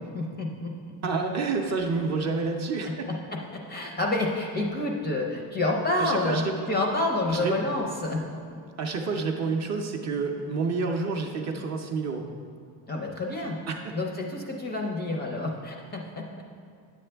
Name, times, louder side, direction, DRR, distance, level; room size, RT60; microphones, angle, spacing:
voice 1, 0.1-1.0 3.1-8.6 12.9-13.6 13.9-16.4, left 2 dB, 20° left, 1 dB, 0.4 m, -29 dB
voice 2, 1.0-3.1 6.0-6.7 7.3-7.6 8.8-12.3 13.7-13.9, right 4 dB, 35° right, 2 dB, 0.5 m, -29 dB
9.6 x 7.7 x 3.3 m, 2.3 s
cardioid pair, 160°, 49 cm